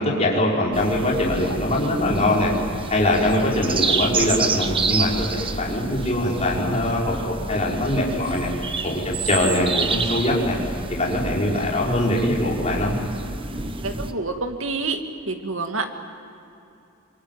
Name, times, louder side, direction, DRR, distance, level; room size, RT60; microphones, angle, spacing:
voice 1, 0.0-2.5 2.9-8.5 8.8-10.6 10.9-13.0, left 1 dB, 30° left, -4 dB, 5.5 m, -22 dB
sound 1, 0.7-14.1, right 4 dB, 25° right, 1.2 m, -29 dB
voice 2, 13.8-15.9, right 3 dB, 65° right, 5 dB, 2.3 m, -28 dB
27.0 x 23.0 x 9.3 m, 2.8 s
head